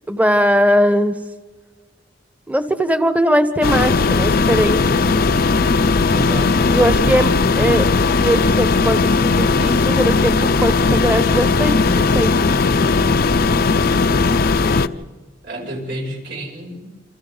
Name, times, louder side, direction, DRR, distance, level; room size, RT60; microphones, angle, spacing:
voice 1, 0.1-1.2 2.5-5.2 6.7-7.9 8.2-12.3, equal, 10° right, 10 dB, 1.1 m, -19 dB
sound 1, 3.6-14.9, left 4 dB, 50° left, 0.7 m, -17 dB
voice 2, 6.1-6.6 15.4-16.9, equal, 60° right, 0 dB, 6.5 m, -29 dB
28.5 x 26.5 x 4.0 m, 1.3 s
head